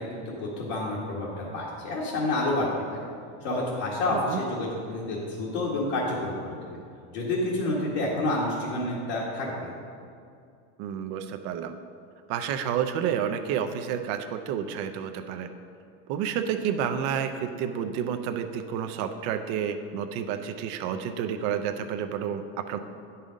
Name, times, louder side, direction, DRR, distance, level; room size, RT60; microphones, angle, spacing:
voice 1, 0.0-3.0 3.4-6.8 7.1-9.7, left 2 dB, 60° left, -6 dB, 1.8 m, -29 dB
voice 2, 4.1-4.4 10.8-11.8 12.3-15.5 16.1-22.8, right 8 dB, 50° right, 8 dB, 0.6 m, -30 dB
9.5 x 5.6 x 5.1 m, 2.4 s
supercardioid pair, 155°, 35 cm